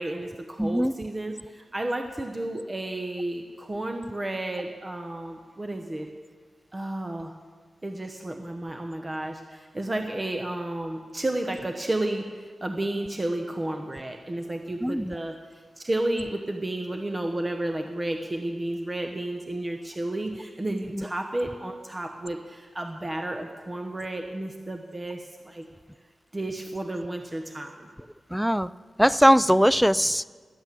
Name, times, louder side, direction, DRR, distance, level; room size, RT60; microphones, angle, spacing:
voice 1, 0.0-6.1 6.7-7.3 7.8-15.4 15.8-25.7 26.3-27.9, right 1 dB, 30° right, 4 dB, 1.0 m, -32 dB
voice 2, 0.6-0.9 14.8-15.2 20.9-21.1 28.3-28.7 29.0-30.2, equal, ahead, 17 dB, 0.4 m, -20 dB
12.5 x 8.0 x 9.1 m, 1.5 s
cardioid pair, 70°, 0 cm